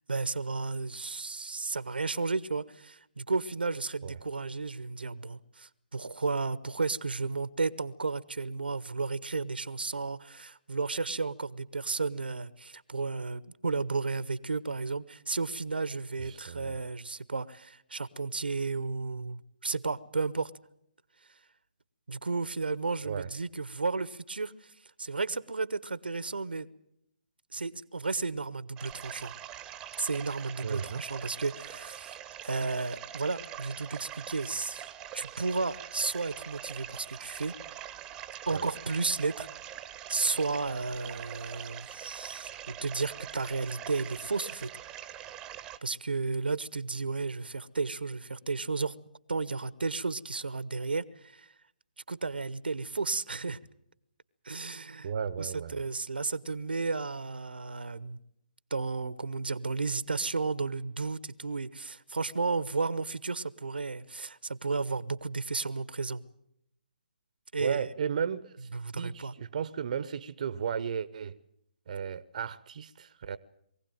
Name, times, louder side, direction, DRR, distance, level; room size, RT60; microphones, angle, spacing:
voice 1, 0.1-20.5 22.1-24.7 25.0-26.7 27.5-29.3 30.0-34.9 35.1-37.6 38.5-39.5 40.1-44.7 45.8-48.9 49.3-51.5 52.1-53.6 54.4-55.1 55.4-58.2 58.7-66.2 67.5-67.9 68.7-69.3, right 4 dB, 85° right, 1.0 m, -33 dB
voice 2, 16.2-16.8 23.0-23.3 30.6-31.0 38.5-38.6 55.0-55.8 67.6-68.7 69.0-71.4 71.9-73.4, right 7 dB, 50° right, 0.7 m, -34 dB
sound 1, 28.8-45.8, right 11 dB, 15° right, 0.8 m, -44 dB
22.5 x 16.0 x 9.1 m
figure-of-eight pair, 145°, 5 cm